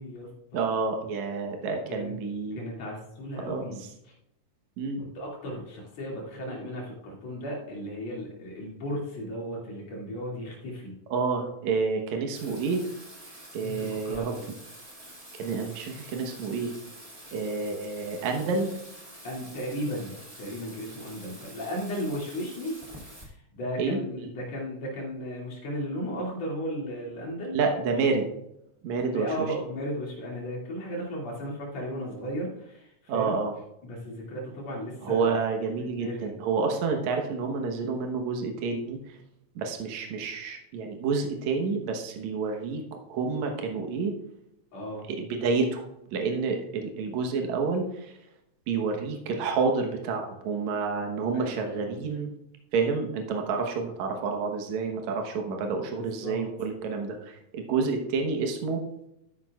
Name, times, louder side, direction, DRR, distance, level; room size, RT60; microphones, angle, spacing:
voice 1, 0.0-0.6 1.9-2.1 2.5-4.1 5.0-10.9 13.6-14.4 19.2-20.1 20.4-22.8 23.3-27.6 29.1-33.4 33.8-35.4 36.0-36.3 44.7-45.1 51.3-51.9 56.0-56.4, equal, 60° left, -3 dB, 3.6 m, -35 dB
voice 2, 0.5-2.6 3.5-3.6 4.8-5.1 11.1-12.8 13.5-14.3 15.3-16.7 17.3-18.7 23.8-24.3 27.5-28.3 28.8-29.3 33.1-33.5 35.0-39.2 39.6-44.2 45.1-45.8 46.1-48.2 48.7-52.3 52.7-58.8, right 4 dB, 70° right, 3 dB, 2.4 m, -29 dB
Bathtub (filling or washing), 12.3-23.2, right 1 dB, 15° right, 1.9 m, -47 dB
12.5 x 9.6 x 2.4 m, 0.83 s
omnidirectional pair, 3.5 m